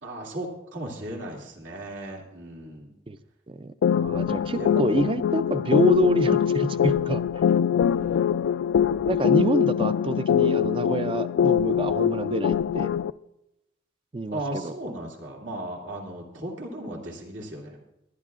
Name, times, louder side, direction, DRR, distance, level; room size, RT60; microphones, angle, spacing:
voice 1, 0.0-2.9 4.6-5.0 5.4-5.6 7.9-8.4 14.3-17.8, right 1 dB, 85° right, -2 dB, 2.4 m, -36 dB
voice 2, 3.5-7.2 7.5-7.6 9.1-12.9 14.1-14.7, right 2 dB, 25° right, 13 dB, 0.3 m, -27 dB
sound 1, 3.8-13.1, left 8 dB, 80° left, 0.3 m, -23 dB
24.0 x 10.5 x 2.4 m, 0.86 s
head